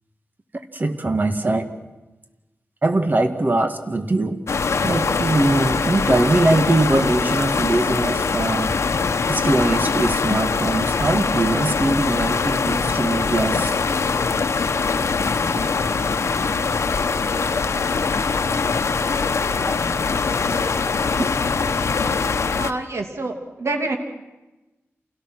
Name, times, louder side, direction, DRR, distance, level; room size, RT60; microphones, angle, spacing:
voice 1, 0.7-1.7 2.8-4.4 4.8-8.8 9.3-13.8 19.7-19.8, right 2 dB, 40° right, 7 dB, 1.8 m, -21 dB
sound 1, 4.5-22.7, left 4 dB, 75° left, 1.0 m, -22 dB
voice 2, 22.5-24.0, right 2 dB, 75° right, 3 dB, 2.7 m, -27 dB
28.0 x 17.5 x 6.2 m, 1.1 s
wide cardioid pair, 90°, 5 cm